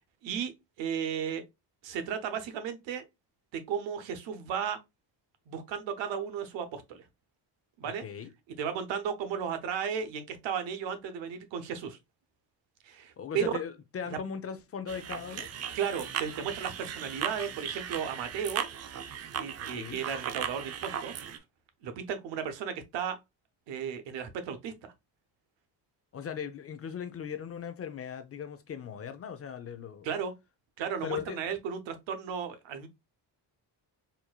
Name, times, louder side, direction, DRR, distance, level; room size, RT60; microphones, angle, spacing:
voice 1, 0.2-0.5 0.8-1.4 1.8-3.1 3.5-4.8 5.5-7.0 7.8-8.0 8.6-12.0 12.8-13.5 14.1-14.2 15.7-18.7 19.4-21.1 21.8-23.2 23.7-24.9 30.0-30.3 30.8-32.9, right 7 dB, 90° right, 0.9 m, -34 dB
voice 2, 7.8-8.3 13.2-15.5 19.6-20.0 26.1-30.1 31.0-31.4, left 7 dB, 35° left, 0.4 m, -38 dB
sound 1, 14.9-21.4, right 9 dB, 40° right, 0.4 m, -37 dB
4.4 x 2.6 x 2.3 m
cardioid pair, 130°, 44 cm